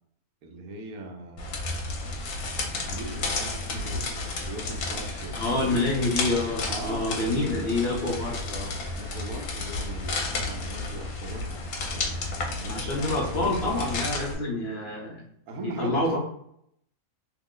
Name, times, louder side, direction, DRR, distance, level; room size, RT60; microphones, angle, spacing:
voice 1, 0.4-2.2 2.5-5.9 6.7-7.9 8.9-13.8 15.5-16.1, right 1 dB, 80° right, 3 dB, 1.1 m, -40 dB
sound 1, 1.4-14.3, left 3 dB, 80° left, 1.1 m, -32 dB
voice 2, 5.4-8.8 12.7-15.2 15.6-16.2, left 2 dB, 55° left, -2 dB, 0.8 m, -27 dB
2.9 x 2.0 x 3.6 m, 0.71 s
omnidirectional pair, 1.5 m